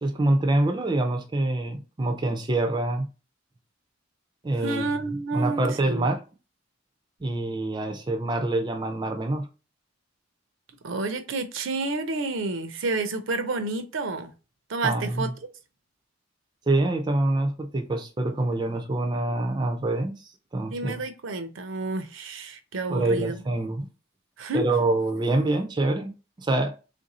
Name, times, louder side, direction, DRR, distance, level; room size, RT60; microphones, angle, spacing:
voice 1, 0.0-3.1 4.4-4.8 5.3-6.2 7.2-9.5 14.8-15.3 16.7-21.0 22.9-23.9 24.5-26.7, right 2 dB, 20° right, 0.4 m, -26 dB
voice 2, 4.6-6.1 10.8-14.3 14.7-15.3 20.7-23.4 24.4-24.7, right 3 dB, 70° right, 0.6 m, -30 dB
3.3 x 2.6 x 4.1 m
head